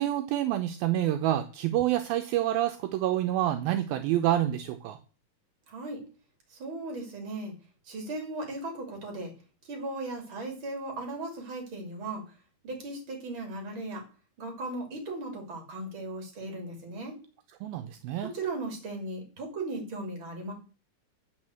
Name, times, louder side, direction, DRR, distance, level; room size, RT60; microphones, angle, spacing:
voice 1, 0.0-5.0 17.6-18.3, right 12 dB, 80° right, 7 dB, 2.4 m, -27 dB
voice 2, 5.7-6.0 6.5-7.5 7.8-9.3 9.6-12.2 12.6-14.0 14.4-17.1 18.2-20.5, right 2 dB, 35° right, 2 dB, 3.3 m, -37 dB
7.8 x 6.3 x 7.6 m, 0.36 s
omnidirectional pair, 4.4 m